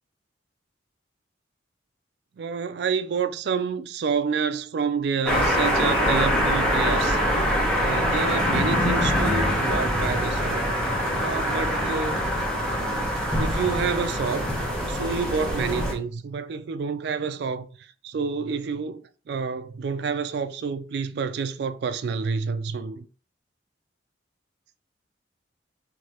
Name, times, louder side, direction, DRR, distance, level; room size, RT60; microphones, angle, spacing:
voice 1, 2.4-7.2 7.8-10.7 11.1-12.2 13.4-14.5 14.9-19.0 19.3-23.1, right 5 dB, 60° right, 0.3 m, -28 dB
sound 1, 5.3-15.9, equal, 5° left, 0.6 m, -24 dB
3.2 x 2.6 x 2.8 m
head